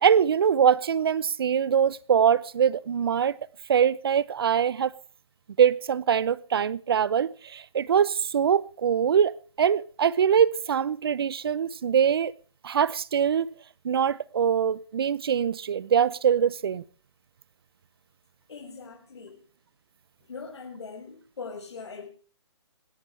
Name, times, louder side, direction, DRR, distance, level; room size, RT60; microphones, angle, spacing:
voice 1, 0.0-3.4 3.7-4.9 5.6-12.3 12.6-13.6 13.8-16.8, right 8 dB, 55° right, 0.8 m, -23 dB
voice 2, 18.5-19.4 20.3-22.1, left 5 dB, 70° left, 5.8 m, -41 dB
26.5 x 10.5 x 3.4 m
hypercardioid pair, 165°, 15 cm